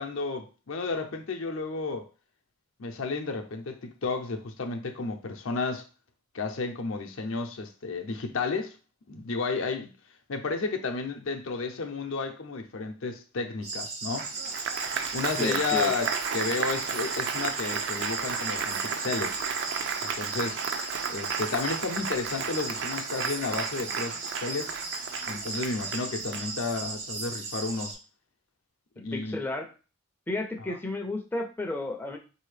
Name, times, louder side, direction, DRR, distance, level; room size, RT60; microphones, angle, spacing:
voice 1, 0.0-2.1 2.8-5.9 6.3-8.8 9.1-9.9 10.3-14.3 15.1-19.4 20.0-20.6 21.1-24.7 25.3-28.0 29.0-29.4, left 4 dB, 75° left, 0.6 m, -32 dB
sound 1, 13.6-27.9, right 3 dB, 85° right, 1.1 m, -36 dB
Applause, 14.2-26.9, right 6 dB, 60° right, 0.4 m, -33 dB
voice 2, 15.4-15.9 29.0-29.7 30.3-32.2, left 2 dB, 10° left, 0.4 m, -32 dB
4.2 x 2.7 x 3.2 m
head